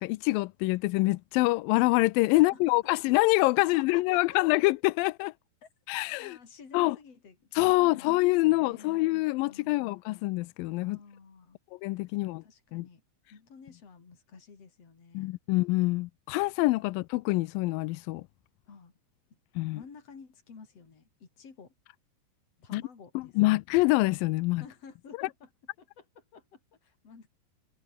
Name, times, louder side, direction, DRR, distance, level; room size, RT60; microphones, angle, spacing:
voice 1, 0.0-5.3 5.9-6.4 6.7-7.0 7.6-11.0 11.8-12.4 12.7-12.9 15.1-18.2 19.6-19.8 22.7-22.8 23.2-24.6 25.2-25.3, left 21 dB, 85° left, 2.3 m, -26 dB
voice 2, 2.3-2.8 3.6-4.6 5.6-5.7 6.2-9.0 9.4-9.9 10.8-11.6 12.2-13.0 13.3-15.3 18.7-18.9 19.3-21.7 22.6-23.6 24.6-25.5 25.8-27.3, left 5 dB, 45° left, 5.2 m, -52 dB
omnidirectional pair, 4.0 m